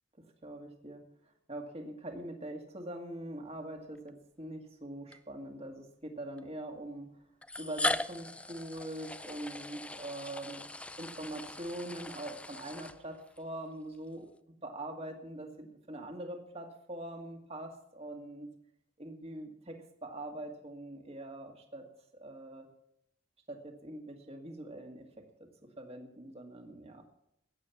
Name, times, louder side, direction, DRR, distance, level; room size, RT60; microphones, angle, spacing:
voice 1, 0.2-1.0 1.5-7.1 7.6-10.6 11.0-14.3 14.6-18.5 19.0-21.9 22.1-22.7 23.5-27.0, right 1 dB, 35° right, 4 dB, 2.1 m, -43 dB
sound 1, 3.9-4.1 5.1-5.2 6.4-6.5 7.4-13.4, left 2 dB, 5° left, 0.4 m, -39 dB
15.0 x 9.5 x 7.2 m, 0.78 s
head